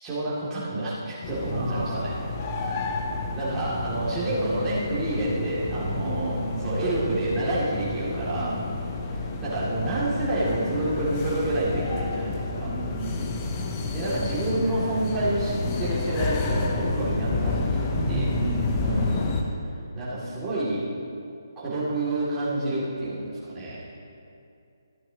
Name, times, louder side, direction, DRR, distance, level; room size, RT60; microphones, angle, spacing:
voice 1, 0.0-2.1 3.3-8.6 9.4-12.7 13.8-18.3 18.8-19.3 19.9-20.8 21.6-23.8, right 1 dB, 15° right, -9 dB, 2.5 m, -28 dB
sound 1, 1.2-19.4, left 3 dB, 25° left, 0.8 m, -30 dB
voice 2, 1.4-2.2 2.5-2.8 5.6-6.9 8.2-8.8 12.5-13.8 17.9-18.9, right 3 dB, 45° right, -3 dB, 1.1 m, -35 dB
14.0 x 8.2 x 2.9 m, 2.6 s
hypercardioid pair, 160°, 2 cm